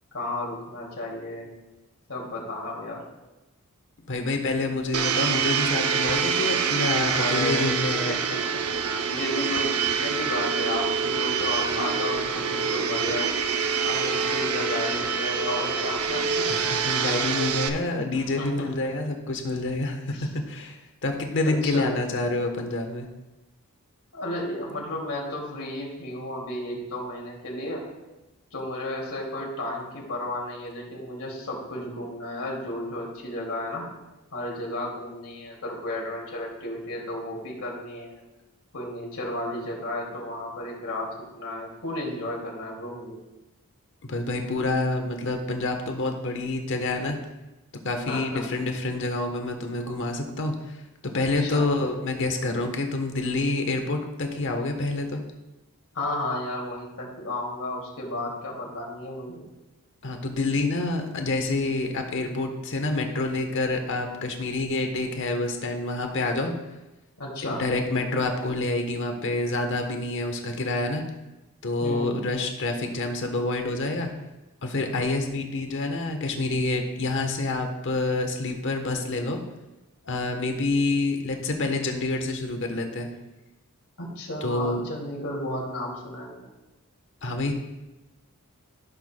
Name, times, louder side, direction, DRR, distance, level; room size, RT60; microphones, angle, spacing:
voice 1, 0.1-1.5 2.1-3.0 7.1-7.7 8.0-8.2 8.5-13.3 13.8-16.5 18.1-18.7 20.1-20.3 21.4-21.9 24.1-27.9 28.5-33.9 34.3-38.2 38.7-43.2 48.1-48.4 51.2-51.6 55.9-59.5 67.2-67.6 71.8-72.3 84.0-86.5, left 1 dB, 85° left, -2 dB, 2.4 m, -33 dB
voice 2, 4.1-8.2 16.5-20.8 21.0-23.1 44.0-47.2 47.8-55.2 60.0-66.5 67.4-71.0 71.6-74.1 74.6-79.4 80.0-83.1 84.4-84.8 87.2-87.5, left 2 dB, 60° left, 4 dB, 1.1 m, -27 dB
Domestic sounds home sounds, 4.9-17.7, right 6 dB, 85° right, 0.7 m, -26 dB
14.5 x 6.8 x 2.2 m, 1.0 s
head